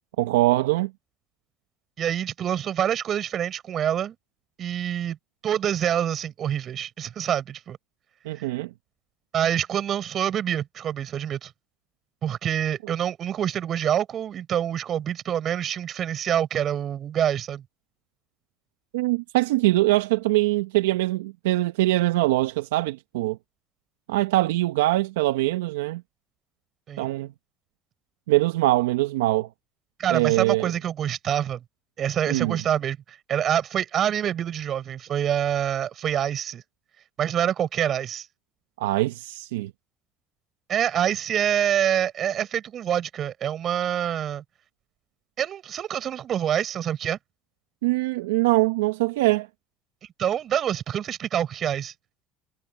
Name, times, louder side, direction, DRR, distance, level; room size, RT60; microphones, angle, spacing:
voice 1, 0.2-0.9 8.2-8.7 18.9-23.4 24.1-26.0 27.0-27.3 28.3-29.5 30.1-30.7 32.3-32.6 38.8-39.7 47.8-49.5, right 18 dB, 85° right, 1.2 m, -23 dB
voice 2, 2.0-4.1 4.6-5.2 5.4-7.8 9.3-11.5 12.2-17.6 26.9-27.1 30.0-31.6 32.0-33.0 33.3-36.6 37.2-38.3 40.7-44.4 45.4-47.2 50.2-51.9, right 10 dB, 50° right, 6.4 m, -26 dB
hypercardioid pair, 75°, 0 cm